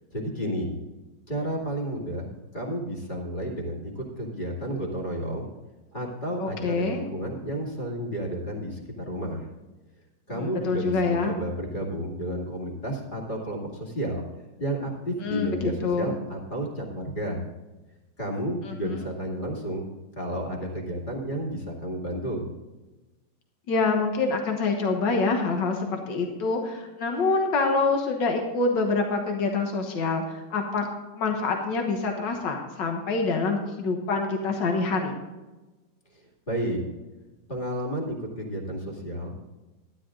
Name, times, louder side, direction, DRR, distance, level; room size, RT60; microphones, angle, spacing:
voice 1, 0.1-0.7 1.3-5.5 5.9-9.5 10.3-14.2 14.6-17.4 18.2-19.9 20.1-22.5 36.1-36.8 37.5-39.5, right 1 dB, 25° left, -2 dB, 2.6 m, -31 dB
voice 2, 6.4-7.0 10.3-11.3 15.2-16.2 18.6-19.0 23.7-30.9 31.2-35.2, left 3 dB, 75° left, 3 dB, 2.0 m, -26 dB
12.5 x 11.0 x 3.8 m, 1.1 s
omnidirectional pair, 2.0 m